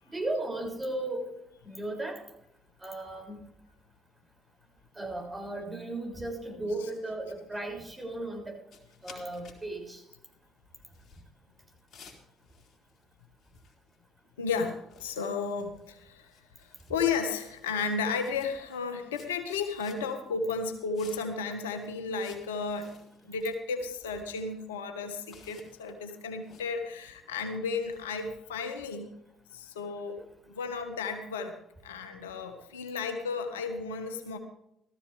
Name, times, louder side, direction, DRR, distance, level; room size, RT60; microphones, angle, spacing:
voice 1, 0.1-1.3 1.6-2.2 2.8-3.4 4.9-8.6 9.0-10.0, right 2 dB, 20° right, 2 dB, 6.6 m, -35 dB
sound 1, 8.7-9.6 9.9-10.1 10.8-11.2 11.7-13.1 13.4-14.0 14.2-14.3 14.6-15.9 16.2-17.0 17.3-17.9 18.2-18.8 19.1-20.2 20.9-21.4 21.7-23.6 23.9-24.4 25.3-28.1, left 5 dB, 55° left, 3.7 m, -56 dB
voice 2, 14.4-16.3 16.6-23.0 23.2-29.1 29.5-31.6 31.8-34.4, left 4 dB, 90° left, 7 dB, 1.5 m, -33 dB
16.5 x 14.5 x 3.5 m, 0.80 s
hypercardioid pair, 50°, 0 cm